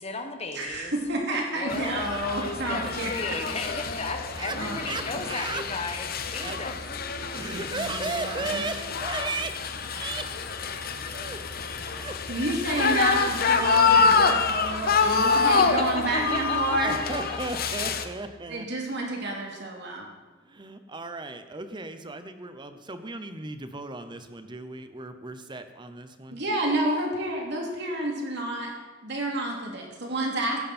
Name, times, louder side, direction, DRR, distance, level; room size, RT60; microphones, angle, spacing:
voice 1, 0.0-0.9 1.3-2.1 2.4-6.8 15.4-15.5 15.9-17.4, left 3 dB, 30° left, 5 dB, 1.2 m, -35 dB
voice 2, 0.5-3.1 4.5-5.2 7.7-8.6 12.3-17.0 18.5-20.1 26.3-28.7 29.0-30.6, right 1 dB, 60° right, 0 dB, 2.8 m, -30 dB
sound 1, 1.7-18.1, left 5 dB, 50° left, 0.8 m, -27 dB
voice 3, 1.7-3.4 4.4-4.6 4.9-5.6 6.4-6.9 7.3-9.6 9.9-10.3 11.1-11.5 11.9-12.2 12.7-12.8 13.2-13.3 16.8-18.7 20.4-26.4, right 3 dB, 25° right, 9 dB, 0.8 m, -36 dB
16.0 x 11.0 x 4.3 m, 1.3 s
head